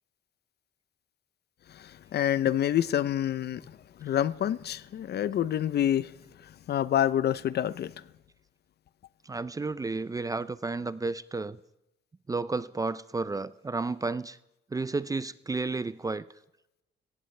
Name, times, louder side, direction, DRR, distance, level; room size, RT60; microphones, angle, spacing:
voice 1, 1.7-6.1 6.4-7.9, left 11 dB, 55° left, 0.6 m, -28 dB
voice 2, 9.3-11.6 12.3-14.4 14.7-16.2, right 3 dB, 15° right, 0.4 m, -32 dB
16.5 x 16.0 x 3.3 m
cardioid pair, 90°, 20 cm